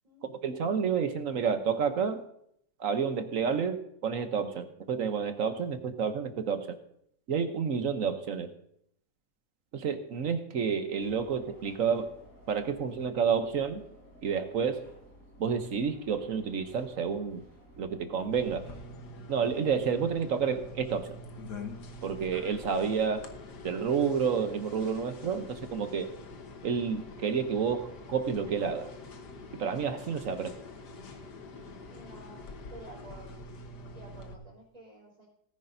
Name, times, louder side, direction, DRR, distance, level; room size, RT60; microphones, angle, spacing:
voice 1, 0.2-2.2 2.8-6.8 7.3-8.5 9.7-12.1 12.5-13.8 14.2-14.8 15.4-17.4 17.8-18.7 19.3-21.1 22.0-23.3 23.6-26.1 26.6-28.9 29.5-30.5, right 6 dB, 60° right, 8 dB, 1.2 m, -30 dB
sound 1, 11.0-18.8, equal, 55° left, 3.9 m, -55 dB
sound 2, 18.3-34.3, left 2 dB, 80° left, 1.8 m, -45 dB
voice 2, 31.9-32.4 32.7-33.4 33.9-35.3, right 1 dB, 20° right, -3 dB, 4.4 m, -51 dB
18.5 x 10.0 x 2.7 m, 0.71 s
omnidirectional pair, 1.8 m